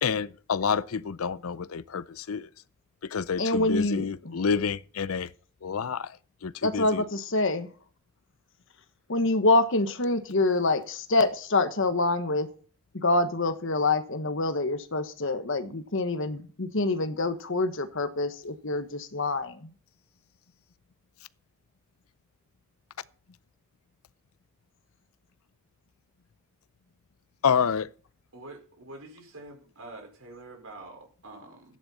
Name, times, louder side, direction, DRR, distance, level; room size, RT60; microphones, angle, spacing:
voice 1, 0.0-2.5 3.1-5.3 5.6-6.1 6.4-7.0 27.4-27.9, left 6 dB, 90° left, 0.6 m, -28 dB
voice 2, 3.4-4.4 6.6-7.7 9.1-12.5 12.9-19.7, left 2 dB, 65° left, 1.3 m, -26 dB
voice 3, 28.3-31.6, right 2 dB, 85° right, 4.7 m, -46 dB
14.5 x 10.0 x 4.2 m
head